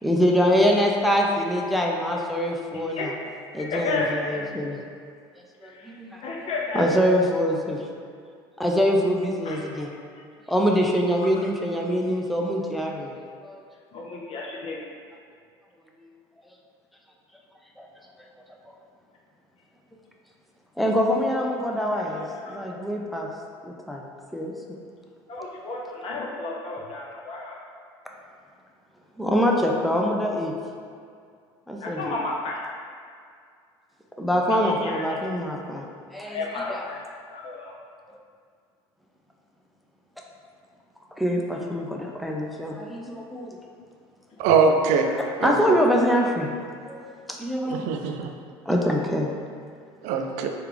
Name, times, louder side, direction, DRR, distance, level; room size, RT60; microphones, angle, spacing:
voice 1, 0.0-3.1 3.5-4.8 5.6-6.2 6.7-7.8 8.6-9.9 10.5-13.2 13.4-13.6 16.0-16.1 17.8-17.9 20.8-23.3 23.6-24.0 24.3-24.8 29.2-30.5 31.7-32.2 34.2-35.9 36.1-37.0 41.2-43.6 45.4-46.5 46.9-47.9 48.7-49.3, equal, ahead, -1 dB, 0.4 m, -24 dB
voice 2, 3.6-4.1 6.2-6.9 9.4-9.8 10.2-10.3 13.9-14.8 22.3-22.5 25.3-27.6 31.8-32.6 34.5-35.0 36.3-37.0 37.3-37.7, left 3 dB, 50° left, -2 dB, 0.7 m, -32 dB
voice 3, 44.4-45.1 45.4-45.8 47.7-48.3 50.0-50.5, right 5 dB, 65° right, 4 dB, 0.4 m, -22 dB
3.2 x 2.4 x 3.2 m, 2.2 s
hypercardioid pair, 75°, 13 cm